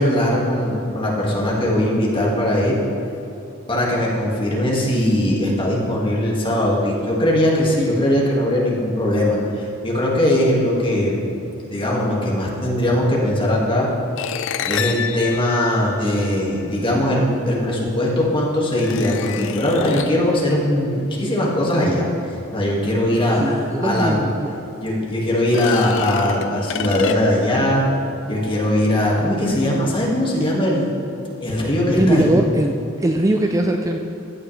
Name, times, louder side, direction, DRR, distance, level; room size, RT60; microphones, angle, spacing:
voice 1, 0.0-2.8 3.7-11.2 11.6-13.9 14.6-24.2 24.8-27.9 28.2-30.9 31.4-32.4, left 1 dB, 25° left, -4 dB, 2.0 m, -20 dB
sound 1, 14.2-16.7 17.9-18.0 18.7-20.3 23.6-23.7 24.1-24.2 25.4-27.5, left 8 dB, 65° left, 0.4 m, -28 dB
voice 2, 23.4-24.5 32.0-34.0, right 1 dB, 15° right, 3 dB, 0.4 m, -20 dB
15.5 x 9.1 x 3.3 m, 2.8 s
head